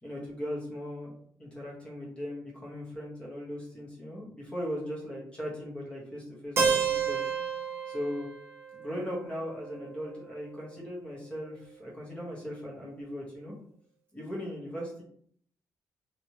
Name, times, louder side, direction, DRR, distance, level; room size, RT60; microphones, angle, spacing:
voice 1, 0.0-1.1 1.4-7.3 7.9-8.3 8.7-13.6 14.1-15.0, equal, 15° left, -5 dB, 1.2 m, -38 dB
Keyboard (musical), 6.6-10.5, right 6 dB, 40° right, 0.6 m, -31 dB
3.1 x 3.0 x 2.9 m, 0.63 s
wide cardioid pair, 150°, 7 cm